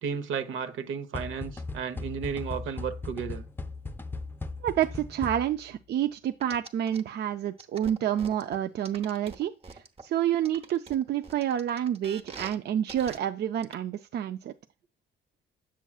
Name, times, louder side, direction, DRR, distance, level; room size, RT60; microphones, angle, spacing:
voice 1, 0.0-3.4, right 6 dB, 80° right, 0.9 m, -33 dB
sound 1, 1.1-5.7, left 3 dB, 10° left, 0.5 m, -38 dB
voice 2, 4.6-14.5, right 10 dB, 60° right, 0.4 m, -29 dB
sound 2, 6.4-7.0 7.6-10.0 10.4-12.6 12.9-13.2 13.6-13.7, right 4 dB, 30° right, 0.9 m, -44 dB
7.2 x 6.9 x 2.3 m
cardioid pair, 90°, 20 cm